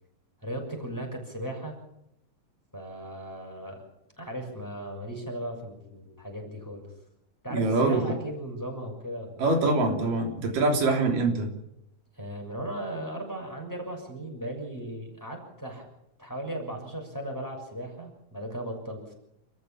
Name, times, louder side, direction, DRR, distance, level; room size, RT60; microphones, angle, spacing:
voice 1, 0.4-1.7 2.7-3.8 4.2-6.9 7.4-9.6 12.1-15.9 16.2-19.1, right 1 dB, 5° left, 1 dB, 6.3 m, -37 dB
voice 2, 7.5-8.0 9.4-11.5, right 2 dB, 85° right, 3 dB, 5.0 m, -24 dB
28.5 x 14.5 x 7.3 m, 0.82 s
omnidirectional pair, 3.7 m